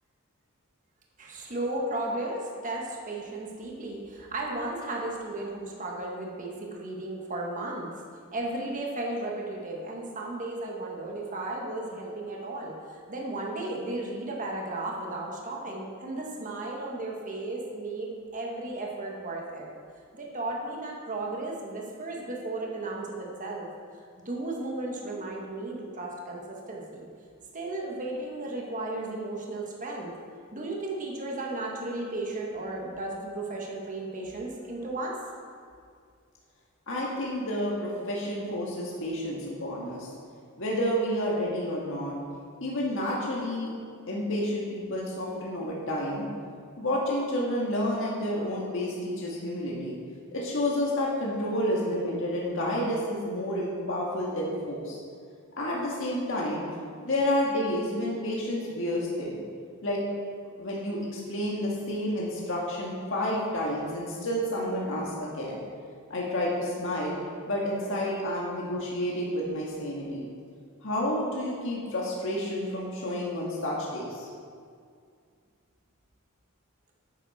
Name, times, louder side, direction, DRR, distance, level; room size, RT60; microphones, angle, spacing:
voice 1, 1.2-7.9 8.3-19.7 20.1-23.7 24.2-27.1 27.5-30.1 30.5-35.1, right 2 dB, 35° right, -1 dB, 1.5 m, -34 dB
voice 2, 36.9-40.1 40.6-42.2 42.6-43.7 44.1-46.2 46.8-50.0 50.3-55.0 55.6-56.6 57.0-59.4 59.8-60.0 60.6-65.6 66.1-67.1 67.5-70.2 70.8-74.3, left 1 dB, 60° left, -4 dB, 1.7 m, -30 dB
10.5 x 9.6 x 4.2 m, 2.2 s
head